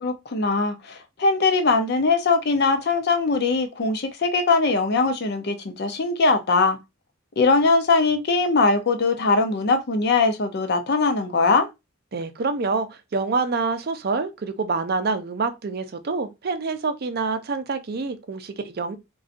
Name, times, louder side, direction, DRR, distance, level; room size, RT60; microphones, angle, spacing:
voice 1, 0.0-6.8 7.4-11.7, left 3 dB, 55° left, 0.5 m, -21 dB
voice 2, 12.1-19.0, right 4 dB, 50° right, 0.5 m, -26 dB
3.9 x 2.3 x 2.5 m
head